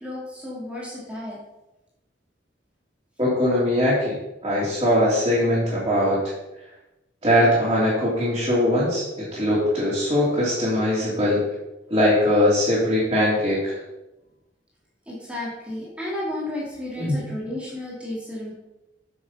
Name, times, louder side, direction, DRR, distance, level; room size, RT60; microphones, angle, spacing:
voice 1, 0.0-1.4 15.1-18.5, left 1 dB, 5° right, -5 dB, 2.3 m, -33 dB
voice 2, 3.2-4.1 4.4-6.2 7.2-11.4 11.9-13.8 17.0-17.1, left 1 dB, 25° right, -9 dB, 2.9 m, -21 dB
8.4 x 6.3 x 5.5 m, 0.98 s
head